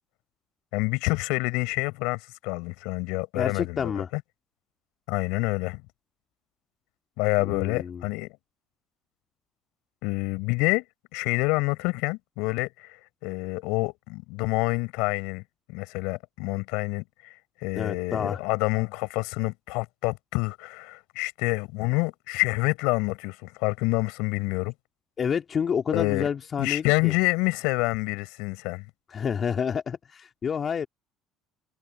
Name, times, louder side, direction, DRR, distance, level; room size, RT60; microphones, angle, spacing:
voice 1, 0.7-4.2 5.1-5.8 7.2-8.3 10.0-10.8 11.1-13.0 13.2-15.4 15.7-17.3 17.6-24.7 25.9-26.3 26.6-28.8, left 26 dB, 75° left, 5.7 m, -27 dB
voice 2, 3.3-4.1 7.4-8.1 17.7-18.4 25.2-27.1 29.1-30.9, left 7 dB, 45° left, 2.3 m, -29 dB
hypercardioid pair, 65°, 0 cm